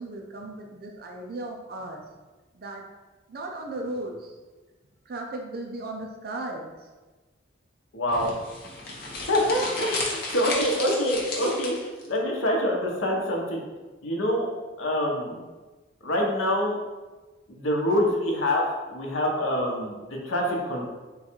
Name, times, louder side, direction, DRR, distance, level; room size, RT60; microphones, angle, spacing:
voice 1, 0.0-2.0 2.5-2.9 3.3-4.3 5.1-6.7 10.5-10.7, right 2 dB, 50° right, 2 dB, 0.4 m, -36 dB
voice 2, 7.9-8.3 9.3-13.6 14.0-14.5 14.8-15.4 16.0-16.8 17.5-18.6 18.9-20.9, left 1 dB, 90° left, -1 dB, 0.8 m, -25 dB
sound 1, 8.1-12.1, left 2 dB, 50° left, 0.8 m, -33 dB
3.9 x 2.3 x 4.3 m, 1.2 s
head